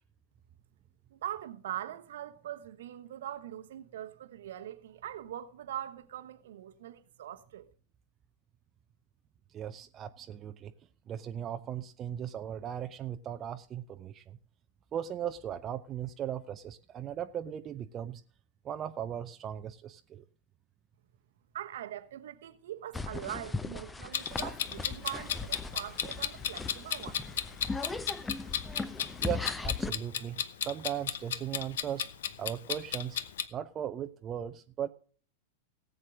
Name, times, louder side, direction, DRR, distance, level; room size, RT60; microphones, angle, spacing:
voice 1, 1.1-7.7 21.5-27.2, right 12 dB, 60° right, 1.1 m, -42 dB
voice 2, 9.5-10.7 11.1-14.4 14.9-18.2 18.6-20.2 29.2-32.1 32.4-33.2 33.5-34.9, right 10 dB, 30° right, 0.7 m, -38 dB
sound 1, 22.9-29.9, left 3 dB, 10° left, 0.8 m, -38 dB
Clock, 24.1-33.4, left 9 dB, 60° left, 0.8 m, -35 dB
18.0 x 8.0 x 3.7 m
figure-of-eight pair, 95°, 0 cm